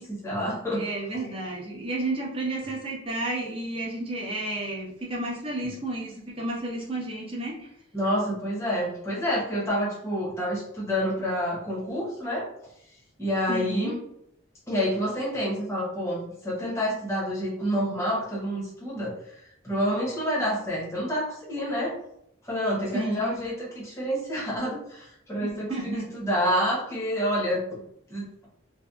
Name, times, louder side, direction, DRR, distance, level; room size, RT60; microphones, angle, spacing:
voice 1, 0.0-0.8 7.9-12.5 13.2-14.0 14.7-22.0 22.4-27.8 28.1-28.5, equal, 15° left, -5 dB, 0.7 m, -28 dB
voice 2, 0.7-7.7 13.5-13.9 22.9-23.4 25.4-26.1, right 2 dB, 25° right, -3 dB, 0.6 m, -32 dB
2.6 x 2.2 x 2.2 m, 0.73 s
head